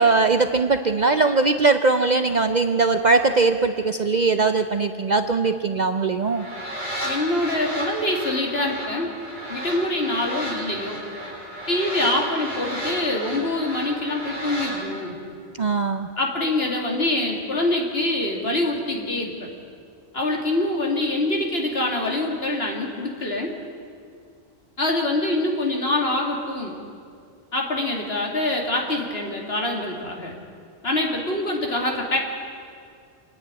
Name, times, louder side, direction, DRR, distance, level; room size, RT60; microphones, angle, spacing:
voice 1, 0.0-6.4 15.6-16.1, right 3 dB, 45° right, 8 dB, 0.6 m, -20 dB
sound 1, 6.2-14.7, equal, 30° left, 7.4 m, -33 dB
voice 2, 7.0-9.1 9.5-11.0 11.7-15.2 16.2-19.5 20.1-23.5 24.8-26.7 27.5-30.3 30.8-32.2, left 2 dB, 55° left, 0 dB, 2.8 m, -25 dB
27.0 x 10.0 x 9.6 m, 2.3 s
omnidirectional pair, 1.2 m